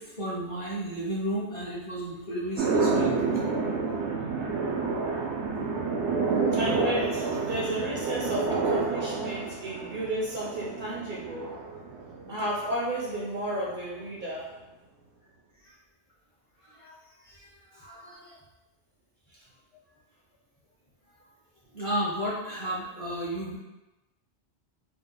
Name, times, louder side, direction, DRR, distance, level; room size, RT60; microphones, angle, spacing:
voice 1, 0.0-3.2 16.7-16.9 17.2-18.4 21.7-23.6, right 1 dB, 35° left, -7 dB, 0.8 m, -33 dB
sound 1, 2.6-12.9, right 4 dB, 80° right, 0.9 m, -29 dB
voice 2, 6.5-11.6 12.3-14.5, right 1 dB, 55° right, -4 dB, 0.6 m, -33 dB
2.9 x 2.1 x 3.8 m, 1.0 s
omnidirectional pair, 1.1 m